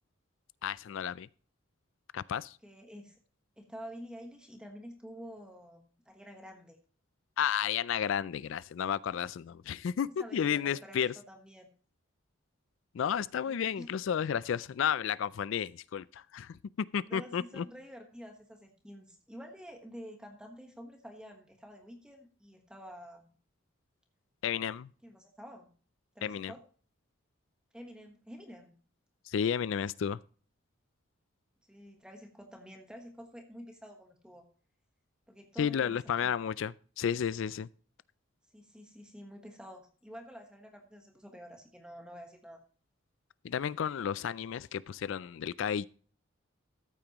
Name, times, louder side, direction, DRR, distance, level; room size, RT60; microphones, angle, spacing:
voice 1, 0.6-1.3 2.1-2.6 7.4-11.1 12.9-16.6 16.9-17.6 24.4-24.9 26.2-26.5 29.3-30.2 35.6-37.7 43.4-45.9, left 8 dB, 65° left, 0.3 m, -32 dB
voice 2, 2.6-3.2 3.6-6.8 10.0-11.7 13.4-13.9 17.0-23.3 25.0-25.7 26.1-26.6 27.7-28.7 31.6-34.5 35.3-36.3 38.5-42.6, equal, 5° right, 1.3 m, -49 dB
14.0 x 8.6 x 3.0 m
head